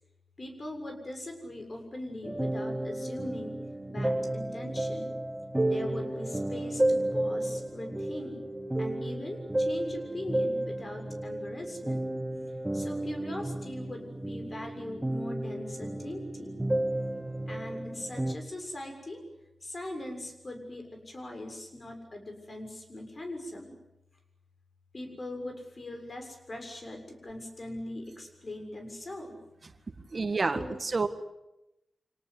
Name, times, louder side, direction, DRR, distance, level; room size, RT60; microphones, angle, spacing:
voice 1, 0.4-3.6 3.9-5.1 5.6-8.4 8.8-12.1 12.7-16.6 17.5-19.2 19.6-23.7 24.9-29.4 29.9-30.8, left 1 dB, 45° left, 4 dB, 6.9 m, -41 dB
sound 1, 2.2-18.4, right 1 dB, 15° right, 1.7 m, -32 dB
voice 2, 30.1-31.1, right 3 dB, 50° right, 9 dB, 1.9 m, -29 dB
26.0 x 19.0 x 9.8 m, 0.90 s
cardioid pair, 60°, 0 cm